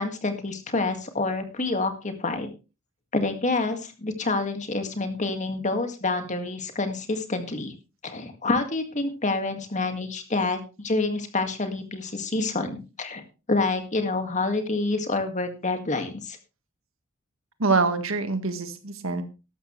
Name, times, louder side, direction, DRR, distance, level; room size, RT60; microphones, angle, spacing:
voice 1, 0.0-2.5 3.1-7.7 8.0-13.2 13.5-16.4, left 3 dB, 35° left, 7 dB, 1.9 m, -27 dB
voice 2, 17.6-19.2, right 3 dB, 75° right, 9 dB, 1.6 m, -25 dB
13.5 x 12.0 x 3.2 m, 0.30 s
head